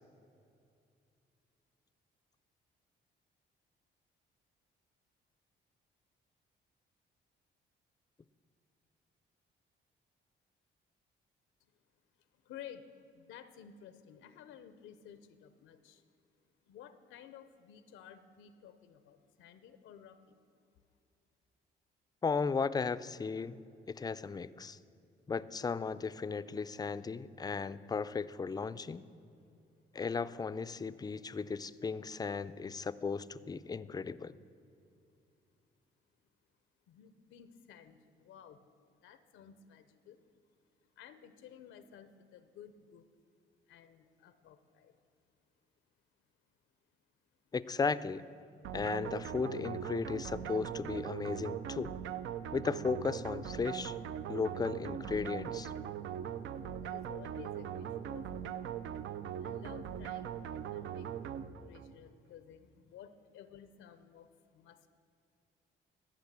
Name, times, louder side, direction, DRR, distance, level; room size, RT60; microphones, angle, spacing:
voice 1, 12.4-12.9 13.1-16.0 16.7-20.4 36.9-38.6 38.9-40.2 41.0-43.0 43.7-45.0 56.7-58.6 59.4-61.1 61.6-64.9, left 9 dB, 85° left, 11 dB, 0.6 m, -54 dB
voice 2, 22.2-23.6 23.9-24.8 25.3-29.0 29.9-34.4 47.5-48.2 48.7-51.9 52.5-54.0 54.3-55.7, left 5 dB, 20° left, 16 dB, 0.4 m, -35 dB
sound 1, 48.6-62.0, right 9 dB, 75° right, 0.5 m, -40 dB
14.0 x 6.2 x 7.4 m, 2.5 s
cardioid pair, 90°, 20 cm